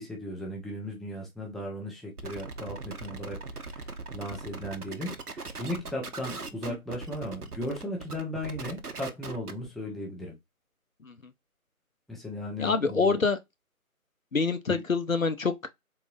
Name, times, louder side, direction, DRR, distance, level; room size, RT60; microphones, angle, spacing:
voice 1, 0.0-3.4 3.6-10.4 12.1-13.2 14.7-14.8, left 1 dB, ahead, 0.6 m, -36 dB
sound 1, 2.2-9.7, right 3 dB, 85° right, 0.8 m, -40 dB
voice 2, 12.6-13.4 14.3-15.7, left 4 dB, 65° left, 0.6 m, -26 dB
3.9 x 2.8 x 2.4 m
figure-of-eight pair, 170°, 44 cm